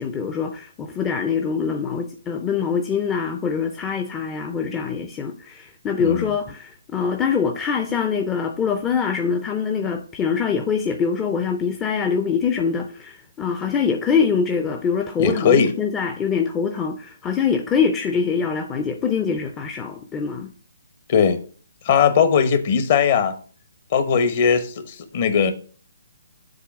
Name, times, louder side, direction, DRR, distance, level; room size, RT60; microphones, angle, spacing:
voice 1, 0.0-20.5, left 6 dB, 15° left, 0.5 m, -24 dB
voice 2, 15.2-15.7 21.1-21.4 21.8-23.3 23.9-25.5, left 6 dB, 40° left, 1.0 m, -19 dB
7.5 x 3.4 x 6.0 m
figure-of-eight pair, 135°, 0 cm